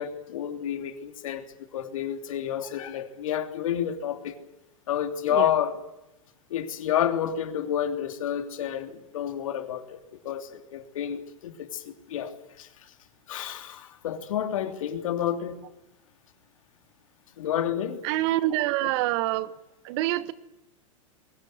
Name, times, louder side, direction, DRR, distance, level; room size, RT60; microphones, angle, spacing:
voice 1, 0.0-1.4 1.7-4.4 4.9-5.7 6.5-10.0 10.2-12.7 13.3-15.6 17.4-18.0, left 10 dB, 75° left, 3.1 m, -30 dB
voice 2, 18.0-19.5 19.8-20.3, right 15 dB, 55° right, 1.5 m, -26 dB
22.0 x 19.0 x 9.7 m
hypercardioid pair, 120°, 17 cm